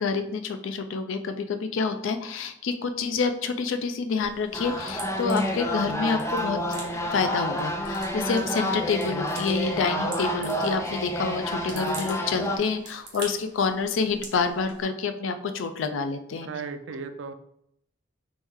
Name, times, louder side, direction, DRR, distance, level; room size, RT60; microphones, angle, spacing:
voice 1, 0.0-6.6 7.1-16.5, left 5 dB, 85° left, 9 dB, 0.4 m, -28 dB
sound 1, 4.1-14.9, right 3 dB, 55° right, 1.0 m, -46 dB
sound 2, 4.5-12.6, equal, 15° left, 0.4 m, -29 dB
voice 2, 16.4-17.3, right 5 dB, 80° right, 9 dB, 0.4 m, -35 dB
3.1 x 3.1 x 3.5 m, 0.72 s
head